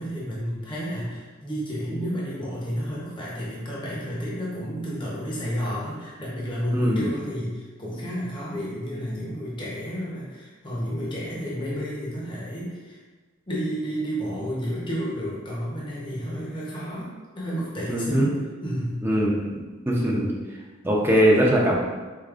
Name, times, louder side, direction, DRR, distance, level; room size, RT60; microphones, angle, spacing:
voice 1, 0.0-13.0 13.5-18.3 18.6-19.1, equal, 25° left, -6 dB, 0.7 m, -31 dB
voice 2, 6.7-7.0 17.9-18.3 19.0-19.5 19.9-20.3 20.8-21.8, equal, 10° right, -4 dB, 0.5 m, -21 dB
4.9 x 2.5 x 2.4 m, 1.3 s
head